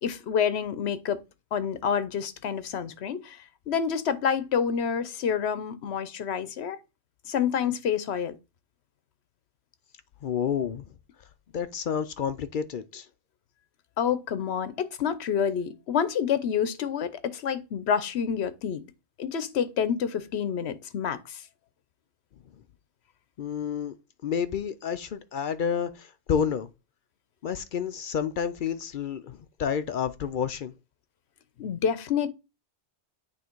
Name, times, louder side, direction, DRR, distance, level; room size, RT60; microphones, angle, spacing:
voice 1, 0.0-1.2 1.5-3.4 3.7-6.8 7.3-8.3 14.0-18.8 19.2-21.4 31.6-32.3, left 7 dB, 75° left, 1.0 m, -28 dB
voice 2, 10.2-10.8 11.5-13.1 23.4-23.9 24.2-26.7 27.4-30.7, left 7 dB, 60° left, 0.6 m, -30 dB
8.9 x 3.1 x 4.5 m
omnidirectional pair, 1.1 m